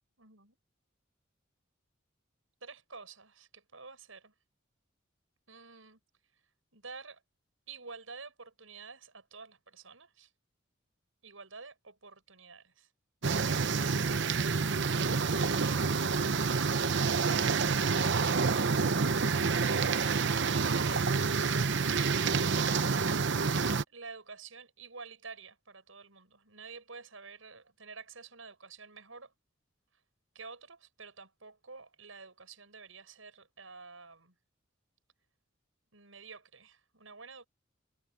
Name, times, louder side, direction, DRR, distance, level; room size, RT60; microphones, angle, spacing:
voice 1, 0.2-0.6 2.6-4.3 5.5-6.0 6.7-7.2 7.7-10.3 11.2-12.9 20.2-22.4 23.9-29.3 30.3-34.3 35.9-37.5, right 4 dB, 85° right, 6.3 m, -50 dB
sound 1, 13.2-23.8, right 5 dB, 65° right, 0.9 m, -28 dB
head